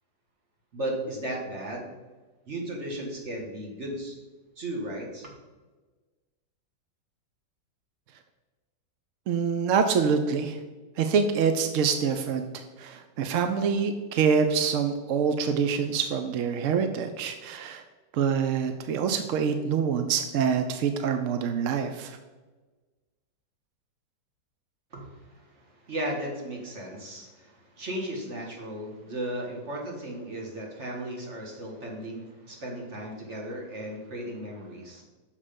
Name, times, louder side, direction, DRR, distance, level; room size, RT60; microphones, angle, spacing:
voice 1, 0.7-1.9 2.5-4.2 4.6-5.3 24.9-35.0, right 1 dB, 40° right, -1 dB, 1.8 m, -35 dB
voice 2, 9.3-10.6 11.0-17.8 18.1-22.2, right 6 dB, 70° right, 7 dB, 0.7 m, -26 dB
6.7 x 5.4 x 5.1 m, 1.3 s
omnidirectional pair, 1.9 m